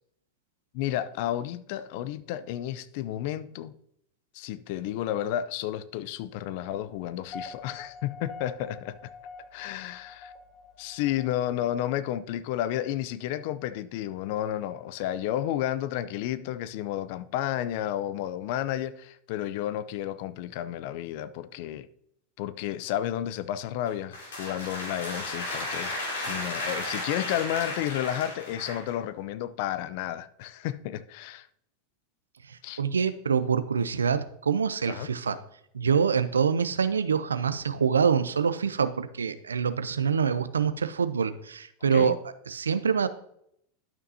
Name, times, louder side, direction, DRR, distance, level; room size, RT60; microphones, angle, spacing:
voice 1, 0.7-3.7 4.3-9.0 9.5-10.3 10.8-21.9 22.4-25.9 26.3-31.5 32.6-32.8 34.9-35.1 41.9-42.2, left 12 dB, 60° left, 0.5 m, -32 dB
sound 1, 7.1-11.9, left 3 dB, 35° left, 0.9 m, -46 dB
sound 2, 23.9-29.0, left 2 dB, 80° left, 2.9 m, -34 dB
voice 2, 32.5-35.4 35.7-42.2 42.5-43.1, right 6 dB, 90° right, 0.5 m, -25 dB
12.5 x 5.9 x 2.8 m
hypercardioid pair, 95°, 0 cm